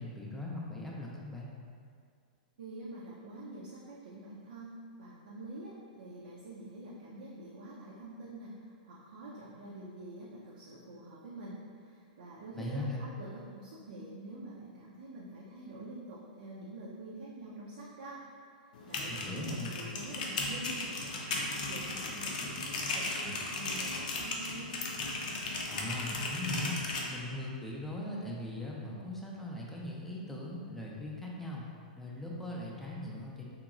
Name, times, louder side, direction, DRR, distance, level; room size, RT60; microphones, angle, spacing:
voice 1, 0.0-1.5 12.5-13.1 19.0-19.8 25.6-26.8 27.1-31.7 31.9-33.5, left 1 dB, 5° left, -4 dB, 0.4 m, -39 dB
voice 2, 2.6-18.2 18.8-24.7, right 1 dB, 75° right, -7 dB, 0.5 m, -46 dB
sound 1, 18.7-27.1, left 2 dB, 65° left, 0.5 m, -36 dB
2.9 x 2.8 x 2.4 m, 2.2 s
hypercardioid pair, 135°, 5 cm